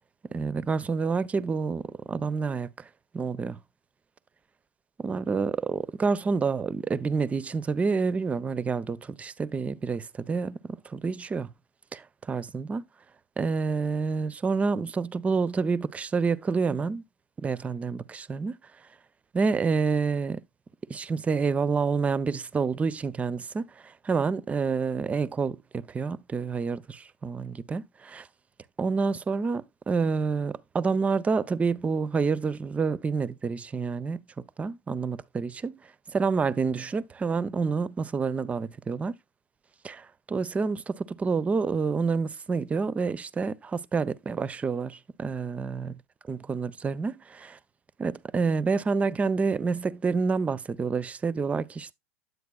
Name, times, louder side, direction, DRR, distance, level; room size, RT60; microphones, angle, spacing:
voice 1, 0.3-2.9 3.1-3.6 5.0-11.5 11.9-12.8 13.4-17.0 17.4-18.6 19.3-20.4 20.9-28.3 28.8-34.2 34.6-35.8 36.1-39.1 39.8-45.9 46.3-47.6 48.0-51.9, right 4 dB, 20° right, 0.4 m, -28 dB
9.4 x 8.0 x 2.2 m
hypercardioid pair, 95°, 7 cm